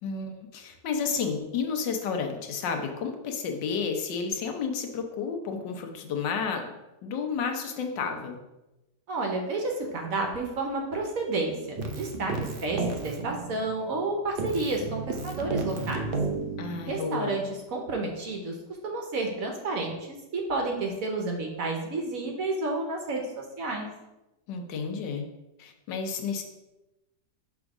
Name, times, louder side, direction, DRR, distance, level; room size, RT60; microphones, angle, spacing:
voice 1, 0.0-6.7 7.0-8.4 16.6-17.4 24.5-25.2 25.6-26.4, left 5 dB, 80° left, 4 dB, 1.5 m, -31 dB
voice 2, 9.1-12.3 12.6-16.1 16.9-17.4 17.7-18.6 18.8-20.0 20.3-23.9, right 2 dB, 55° right, 1 dB, 1.2 m, -30 dB
Keyboard (musical), 11.8-14.1 14.4-17.2, right 3 dB, 85° right, 0.4 m, -33 dB
6.2 x 3.5 x 4.8 m, 0.99 s
omnidirectional pair, 1.9 m